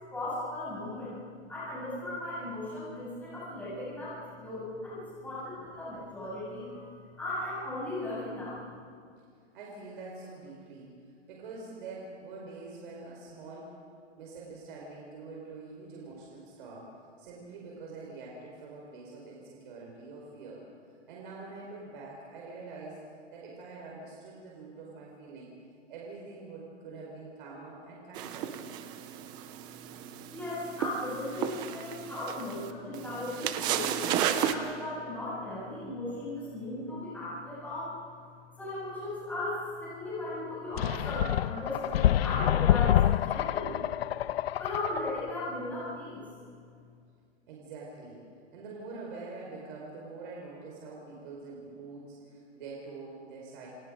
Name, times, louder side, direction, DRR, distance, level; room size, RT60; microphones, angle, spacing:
voice 1, 0.1-1.1 1.5-6.9 7.2-8.6 30.3-37.9 38.6-43.8 44.6-46.2, left 1 dB, 5° left, -9 dB, 8.0 m, -37 dB
voice 2, 9.5-13.8 14.2-20.7 21.1-23.0 23.3-25.5 25.9-28.6 47.5-48.2 48.5-53.7, right 3 dB, 45° right, -2 dB, 5.0 m, -45 dB
sound 1, 28.2-34.5, right 10 dB, 10° right, 0.5 m, -33 dB
sound 2, 40.8-45.3, left 12 dB, 55° left, 0.5 m, -27 dB
28.5 x 26.0 x 5.2 m, 2.2 s
hypercardioid pair, 160°, 36 cm